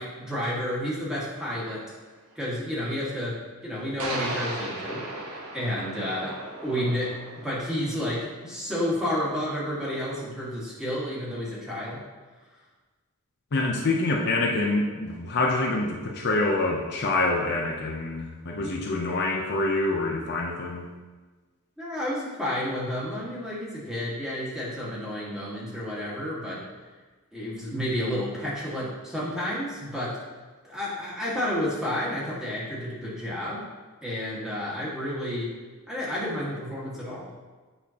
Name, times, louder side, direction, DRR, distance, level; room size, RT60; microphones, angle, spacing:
voice 1, 0.0-1.8 2.4-5.1 5.5-12.0 21.8-26.6 27.3-30.2 30.6-33.6 34.0-35.5 35.9-37.5, left 1 dB, 5° right, -8 dB, 1.7 m, -31 dB
sound 1, 1.3-1.4 4.0-8.3, right 2 dB, 80° right, 1.2 m, -36 dB
voice 2, 13.5-20.9, left 2 dB, 50° left, -1 dB, 0.6 m, -26 dB
8.3 x 5.6 x 2.9 m, 1.4 s
head